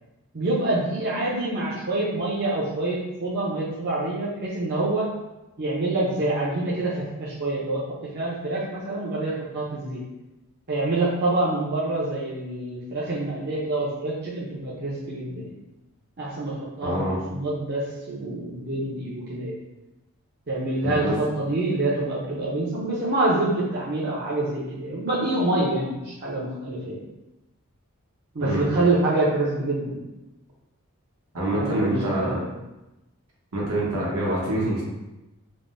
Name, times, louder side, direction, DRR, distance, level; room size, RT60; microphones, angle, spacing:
voice 1, 0.3-5.1 5.6-7.8 8.1-10.0 10.7-15.5 16.2-19.6 20.5-27.0 28.3-30.0 31.5-32.5, right 2 dB, 45° right, -7 dB, 0.5 m, -26 dB
voice 2, 16.8-17.2 20.8-21.1 28.4-28.7 31.3-32.3 33.5-34.8, right 1 dB, 80° right, -4 dB, 0.9 m, -25 dB
3.4 x 2.0 x 2.5 m, 1.0 s
head